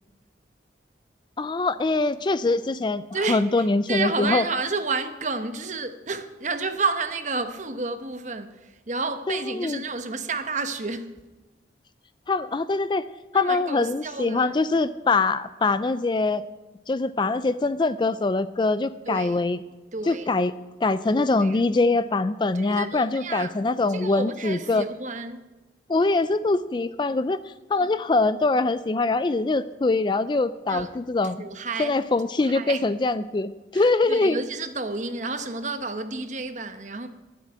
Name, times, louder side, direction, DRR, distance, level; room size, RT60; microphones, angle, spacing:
voice 1, 1.4-3.0 3.3-4.4 9.3-9.8 12.3-13.1 13.3-16.4 16.9-19.6 20.1-20.5 20.8-24.8 25.9-27.4 27.7-31.4 31.8-34.4, left 3 dB, 25° left, 0.3 m, -23 dB
voice 2, 3.1-11.1 13.3-14.5 19.1-19.4 19.9-20.3 21.2-21.6 22.5-23.5 23.9-25.4 27.7-27.9 30.7-30.9 31.4-32.0 32.4-32.8 33.7-37.1, right 3 dB, 40° right, 1.0 m, -31 dB
12.5 x 7.4 x 9.8 m
head